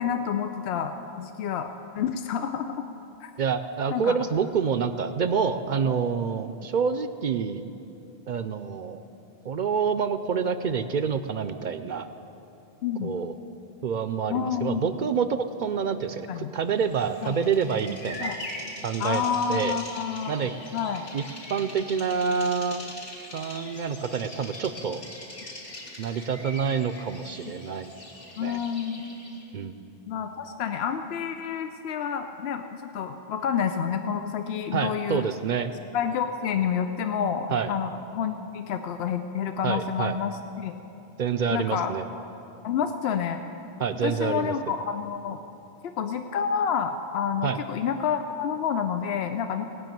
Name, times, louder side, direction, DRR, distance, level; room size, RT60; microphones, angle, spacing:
voice 1, 0.0-1.7 1.9-2.7 3.2-3.3 3.9-4.2 12.8-13.1 14.3-14.8 16.3-16.5 17.2-17.4 18.2-18.4 19.0-21.1 28.4-29.1 30.1-35.3 35.9-40.8 41.5-41.9 42.6-43.4 44.0-45.4 45.8-49.6, left 7 dB, 80° left, 7 dB, 0.9 m, -29 dB
voice 2, 3.4-7.6 8.3-9.0 9.4-12.1 13.0-13.3 13.8-18.4 18.8-19.8 20.3-20.5 21.1-21.2 21.5-22.8 23.3-25.0 26.0-27.9 28.4-28.6 29.5-29.8 34.7-35.7 37.5-37.7 39.6-40.2 41.2-42.0 43.8-44.5 47.4-47.6, right 6 dB, 55° right, 10 dB, 0.6 m, -27 dB
Bird vocalization bird call bird song, 16.8-29.5, left 1 dB, 60° left, 2.1 m, -42 dB
18.5 x 6.2 x 9.1 m, 2.9 s
omnidirectional pair, 1.1 m